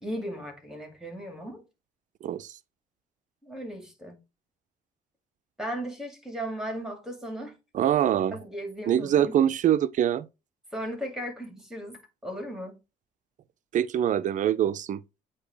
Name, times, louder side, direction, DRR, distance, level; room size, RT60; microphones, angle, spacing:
voice 1, 0.0-1.6 3.4-4.2 5.6-7.6 8.1-9.4 10.7-12.8, equal, 5° right, 2.3 m, -36 dB
voice 2, 2.2-2.5 7.7-8.4 8.9-10.3 13.7-15.0, right 10 dB, 50° right, 0.5 m, -24 dB
8.3 x 2.9 x 4.6 m
cardioid pair, 110°, 17 cm